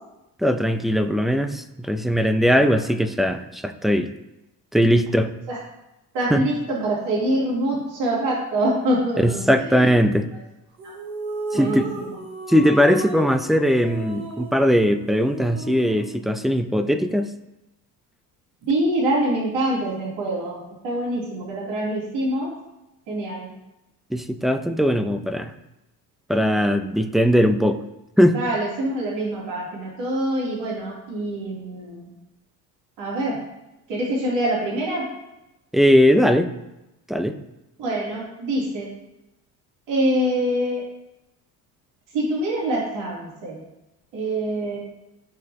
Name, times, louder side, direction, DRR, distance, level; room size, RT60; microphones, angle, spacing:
voice 1, 0.4-4.1 4.7-5.3 6.3-6.4 9.2-10.3 11.5-11.9 12.5-17.3 24.1-25.5 26.3-27.8 28.2-28.4 35.7-36.5 37.1-37.4, equal, ahead, 8 dB, 0.8 m, -19 dB
voice 2, 6.1-9.5 11.5-12.0 18.7-20.6 20.8-22.5 23.1-23.5 28.3-32.1 33.0-33.4 33.9-35.1 37.8-38.9 39.9-40.8 42.1-43.6 44.1-44.8, right 1 dB, 60° right, -6 dB, 3.5 m, -25 dB
sound 1, 10.8-16.2, right 2 dB, 90° right, 1.5 m, -34 dB
14.5 x 6.2 x 3.0 m, 0.94 s
hypercardioid pair, 55°, 49 cm